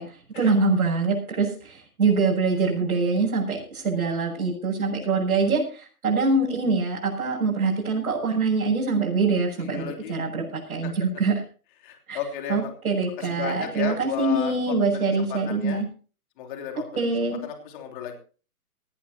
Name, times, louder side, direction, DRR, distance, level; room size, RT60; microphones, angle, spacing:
voice 1, 0.0-11.3 12.1-12.2 12.5-15.8 17.0-17.4, right 4 dB, 70° right, -5 dB, 6.9 m, -24 dB
voice 2, 9.6-10.2 11.8-12.7 13.2-15.8 16.4-16.9 17.4-18.2, left 9 dB, 35° left, 3 dB, 3.4 m, -34 dB
18.0 x 17.0 x 2.9 m, 0.38 s
hypercardioid pair, 150°, 45 cm